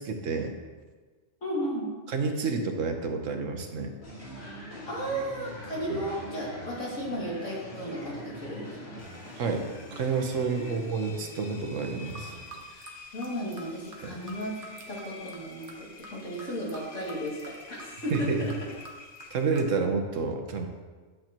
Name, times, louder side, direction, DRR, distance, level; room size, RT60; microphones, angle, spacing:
voice 1, 0.0-0.6 2.1-3.9 5.9-6.0 9.4-9.7 9.9-12.4 14.0-14.1 18.1-18.4 19.3-20.7, right 4 dB, 85° right, 5 dB, 1.3 m, -29 dB
voice 2, 1.4-1.9 4.9-9.0 10.6-10.7 12.7-14.6 14.9-18.5, equal, 80° left, -6 dB, 2.7 m, -34 dB
sound 1, 4.0-12.6, equal, 55° left, 2.3 m, -44 dB
Engine, 9.0-19.8, left 3 dB, 40° left, 0.9 m, -49 dB
sound 2, 12.0-19.6, right 1 dB, 45° right, 1.1 m, -49 dB
11.0 x 7.6 x 3.0 m, 1.4 s
omnidirectional pair, 1.3 m